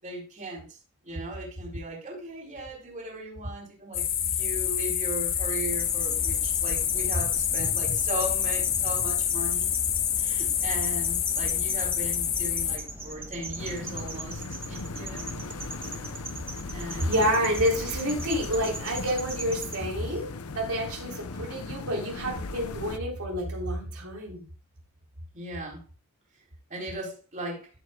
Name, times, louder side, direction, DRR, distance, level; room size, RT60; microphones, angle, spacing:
voice 1, 0.0-9.7 10.2-15.3 16.7-17.1 25.3-25.8 26.7-27.7, right 1 dB, 35° right, 4.2 m, -37 dB
sound 1, 3.9-12.8, left 9 dB, 40° left, 1.2 m, -27 dB
sound 2, 5.7-19.8, right 2 dB, 10° right, 1.3 m, -40 dB
sound 3, 13.6-23.0, left 3 dB, 85° left, 0.8 m, -38 dB
voice 2, 17.0-24.4, equal, 85° right, 3.8 m, -29 dB
15.0 x 8.0 x 2.4 m
head